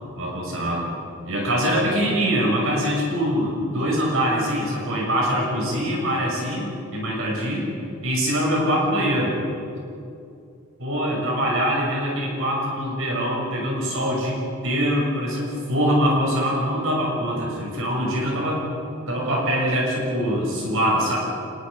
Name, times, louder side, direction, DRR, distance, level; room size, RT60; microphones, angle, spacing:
voice 1, 0.2-0.9 1.2-7.7 8.0-9.4 10.8-18.6 19.1-21.2, equal, 65° right, -3 dB, 6.9 m, -23 dB
26.5 x 22.0 x 5.2 m, 2.5 s
head